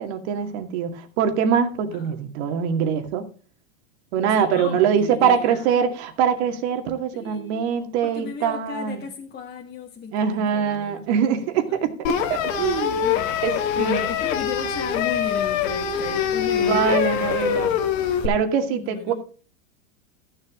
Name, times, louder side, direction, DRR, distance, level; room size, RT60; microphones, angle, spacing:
voice 1, 0.0-3.2 4.1-9.0 10.1-13.0 13.4-14.1 16.6-17.7 18.2-19.1, right 7 dB, 55° right, 2.2 m, -23 dB
voice 2, 4.3-5.8 7.1-7.6 8.0-11.9 12.6-13.4 13.8-17.6 18.7-19.1, left 6 dB, 25° left, 1.6 m, -36 dB
sound 1, 12.0-18.3, left 8 dB, 70° left, 2.1 m, -24 dB
14.5 x 7.3 x 3.8 m
supercardioid pair, 135°, 39 cm